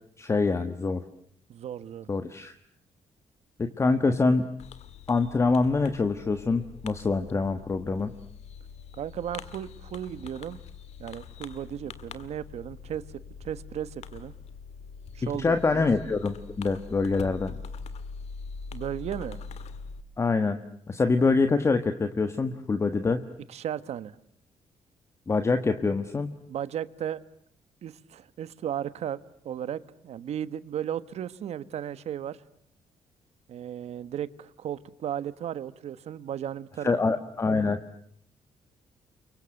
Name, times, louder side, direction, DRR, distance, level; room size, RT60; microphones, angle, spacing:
voice 1, 0.2-1.0 2.1-2.5 3.8-4.5 5.1-8.1 15.3-17.5 20.2-20.6 20.9-23.2 25.3-26.3 36.8-37.8, left 3 dB, 25° left, 8 dB, 1.4 m, -25 dB
voice 2, 1.5-2.1 9.0-10.6 11.0-13.0 13.4-14.3 15.1-15.9 18.7-19.4 23.5-24.2 26.5-27.2 27.8-29.2 29.4-32.4 33.5-37.1, right 10 dB, 65° right, 15 dB, 1.4 m, -35 dB
Fireworks, 4.6-20.0, left 5 dB, 65° left, 1.9 m, -43 dB
30.0 x 24.5 x 7.9 m, 0.69 s
cardioid pair, 155°, 12 cm